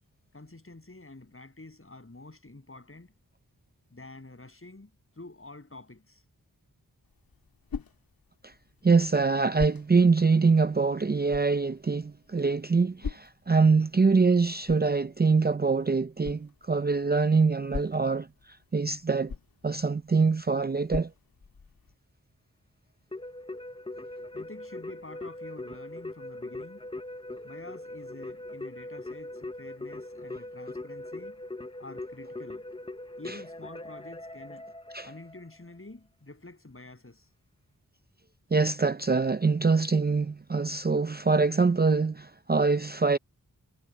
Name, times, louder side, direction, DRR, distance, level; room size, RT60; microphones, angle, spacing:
voice 1, 0.3-3.1 3.9-6.2 24.3-26.9 27.4-31.4 31.8-32.6 33.2-34.7 35.0-37.3, left 2 dB, 40° left, 7.9 m, -48 dB
sound 1, 7.0-21.9, left 5 dB, 85° left, 1.9 m, -44 dB
voice 2, 8.8-19.3 19.6-21.1 33.3-33.4 34.9-35.1 38.5-43.2, right 4 dB, 30° right, 0.5 m, -24 dB
Keyboard (musical), 23.1-35.5, left 2 dB, 15° left, 0.8 m, -41 dB
wide cardioid pair, 75°, 35 cm